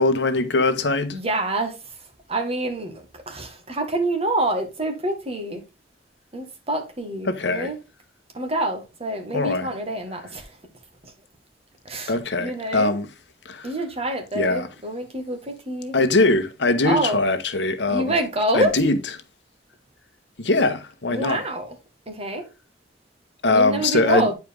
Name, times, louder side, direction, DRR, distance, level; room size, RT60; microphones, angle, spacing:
voice 1, 0.0-1.2 7.3-7.7 9.3-9.7 12.1-13.1 13.4-13.7 14.3-14.7 15.9-18.1 18.5-19.0 20.4-21.4 23.4-24.3, left 2 dB, 90° left, 1.1 m, -21 dB
voice 2, 1.1-1.8 2.3-5.6 6.3-7.7 8.3-10.5 11.0-11.1 11.9-12.9 13.6-16.0 16.8-17.2 17.9-18.7 21.1-21.7 22.1-22.5 23.5-24.3, right 1 dB, 35° right, 1.8 m, -27 dB
9.2 x 4.7 x 3.5 m
head